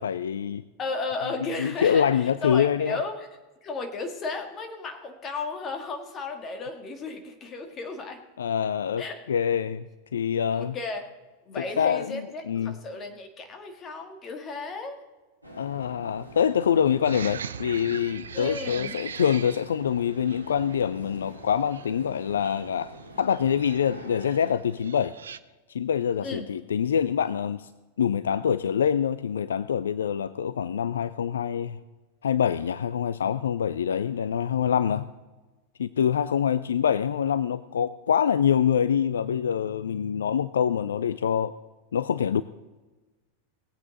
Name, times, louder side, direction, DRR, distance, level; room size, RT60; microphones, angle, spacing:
voice 1, 0.0-0.6 1.6-3.0 8.4-10.8 11.8-12.8 15.6-22.9 23.2-25.1 25.7-27.7 28.0-31.8 32.2-35.1 35.8-41.5 41.9-42.4, left 8 dB, 65° left, 15 dB, 0.3 m, -25 dB
voice 2, 0.8-3.3 3.6-8.2 9.0-9.2 10.5-11.1 11.5-15.0 18.3-19.0 26.2-26.5, left 3 dB, 25° left, 4 dB, 1.8 m, -34 dB
sound 1, 15.4-24.5, right 1 dB, 90° right, 1.5 m, -46 dB
Unidentified-bird-and-Arara, 17.0-25.4, right 7 dB, 65° right, 0.4 m, -42 dB
19.5 x 8.4 x 3.9 m, 1.2 s
figure-of-eight pair, 90°, 0 cm